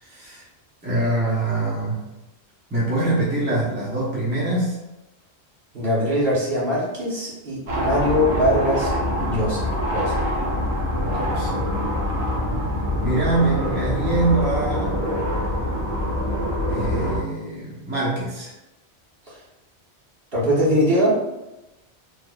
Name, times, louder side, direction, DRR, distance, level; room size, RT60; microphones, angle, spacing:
voice 1, 0.0-0.4 0.8-2.0 2.7-4.8 11.0-11.7 13.0-15.0 16.7-18.5, right 2 dB, 10° right, -7 dB, 0.8 m, -24 dB
voice 2, 5.7-9.6 9.9-10.3 19.3-19.4 20.3-21.2, equal, 55° right, -8 dB, 1.5 m, -22 dB
sound 1, 7.7-17.2, left 1 dB, 75° right, 1.3 m, -24 dB
4.3 x 3.0 x 2.4 m, 0.97 s
omnidirectional pair, 1.1 m